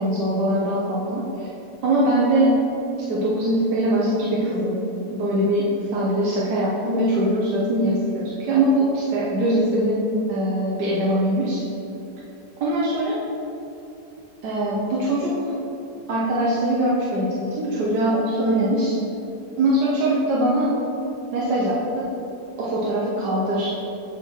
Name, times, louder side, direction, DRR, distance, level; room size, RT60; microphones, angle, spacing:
voice 1, 0.0-1.5 1.8-2.6 3.1-4.8 5.1-11.6 12.6-13.2 14.4-15.7 16.1-18.9 19.6-20.7 21.3-22.1 22.6-23.7, right 1 dB, 80° right, -6 dB, 1.5 m, -22 dB
8.0 x 4.5 x 4.5 m, 2.9 s
omnidirectional pair, 1.8 m